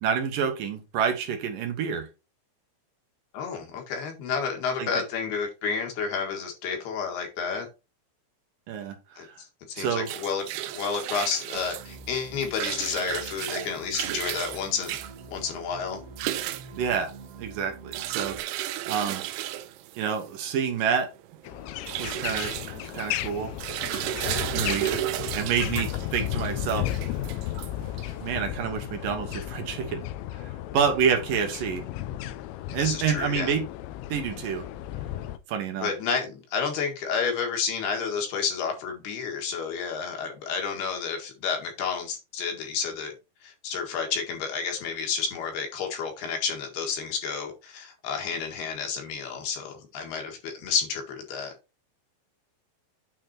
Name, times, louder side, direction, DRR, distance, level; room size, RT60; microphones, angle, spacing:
voice 1, 0.0-2.1 4.8-4.9 8.7-9.3 9.8-10.1 16.8-17.1 17.4-18.6 18.9-19.2 20.0-21.1 22.0-23.5 24.5-25.0 25.3-26.9 28.2-30.0 30.4-31.9 32.7-33.6 34.1-34.7 35.5-35.9, right 7 dB, 65° right, 2.3 m, -28 dB
voice 2, 3.3-7.7 9.2-9.3 9.7-10.4 10.8-15.0 15.3-16.0 24.1-24.6 32.7-33.5 35.8-43.1 43.4-51.5, left 6 dB, 65° left, 3.6 m, -30 dB
sound 1, 9.8-28.3, right 14 dB, 80° right, 2.5 m, -34 dB
sound 2, 11.5-18.4, right 3 dB, 25° right, 1.9 m, -46 dB
sound 3, 21.4-35.4, left 13 dB, 80° left, 2.8 m, -34 dB
9.2 x 4.2 x 4.3 m
omnidirectional pair, 5.1 m